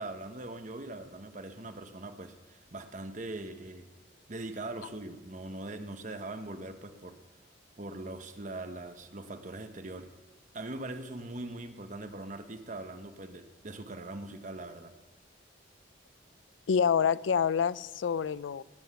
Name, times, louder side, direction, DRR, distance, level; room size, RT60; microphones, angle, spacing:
voice 1, 0.0-3.9 4.3-7.2 7.8-10.1 10.5-14.9, right 2 dB, 40° right, 8 dB, 1.0 m, -41 dB
voice 2, 16.7-18.6, left 7 dB, 90° left, 19 dB, 0.4 m, -27 dB
19.0 x 8.0 x 6.9 m, 1.3 s
head